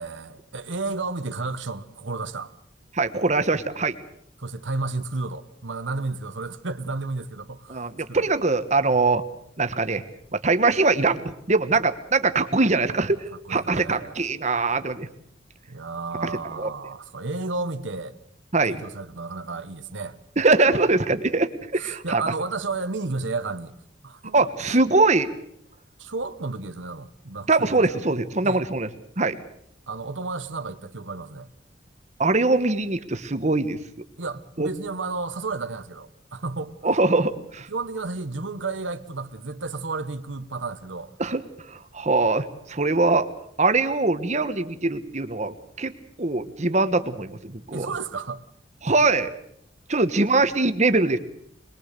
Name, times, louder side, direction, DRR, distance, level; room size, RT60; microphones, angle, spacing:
voice 1, 0.0-2.5 4.4-8.3 13.5-14.2 15.7-18.2 18.6-20.1 21.8-23.7 24.0-24.5 26.0-28.0 28.4-28.6 29.9-31.5 34.2-36.7 37.7-41.1 47.7-48.4, right 3 dB, 80° right, 1.2 m, -32 dB
voice 2, 2.9-3.9 7.7-9.2 9.6-10.0 10.3-13.2 13.5-15.1 16.2-16.3 16.6-16.7 18.5-18.8 20.4-22.2 24.3-25.3 27.5-28.9 29.2-29.4 32.2-33.8 34.6-34.7 36.8-37.7 41.2-41.4 41.7-43.3 43.6-45.9 46.2-47.9 48.8-49.3 49.9-51.2, right 3 dB, 40° right, 1.2 m, -22 dB
22.0 x 21.5 x 6.7 m
head